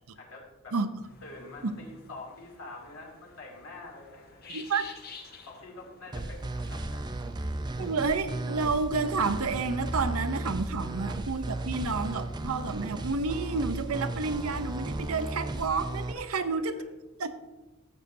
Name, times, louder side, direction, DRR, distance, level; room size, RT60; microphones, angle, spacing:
voice 1, 0.1-0.8 1.2-4.6 5.3-7.2 10.7-11.2 16.1-16.4 16.7-16.8, left 2 dB, 75° left, -2 dB, 2.9 m, -47 dB
sound 1, 1.0-9.0, left 4 dB, 45° left, 1.1 m, -51 dB
voice 2, 4.5-4.8 7.8-16.8 17.2-17.3, right 4 dB, 80° right, 10 dB, 0.7 m, -30 dB
sound 2, 6.1-16.1, right 2 dB, 20° right, 0.5 m, -35 dB
14.5 x 8.1 x 2.7 m, 1.2 s
head